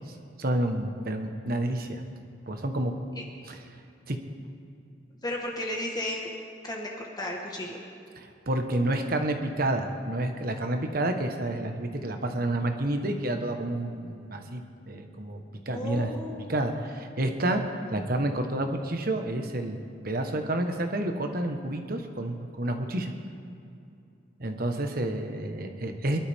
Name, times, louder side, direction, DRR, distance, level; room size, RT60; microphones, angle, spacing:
voice 1, 0.4-2.0 2.5-3.0 3.4-3.6 4.1-4.2 8.2-16.1 16.5-17.6 17.9-19.8 20.0-23.1 24.4-26.2, right 1 dB, 50° right, 5 dB, 1.2 m, -29 dB
voice 2, 5.2-6.3 6.6-7.8 15.7-16.7, left 1 dB, 20° left, -1 dB, 1.4 m, -34 dB
23.0 x 12.0 x 3.6 m, 2.5 s
head